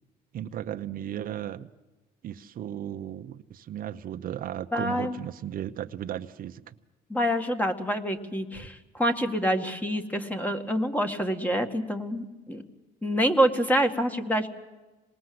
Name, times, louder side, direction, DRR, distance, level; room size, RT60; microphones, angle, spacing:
voice 1, 0.3-1.7 2.2-6.7, right 11 dB, 60° right, 8 dB, 0.8 m, -35 dB
voice 2, 4.7-5.1 7.1-12.6 13.0-14.5, equal, 10° left, 7 dB, 1.9 m, -26 dB
26.5 x 20.0 x 7.8 m, 1.2 s
cardioid pair, 110°, 17 cm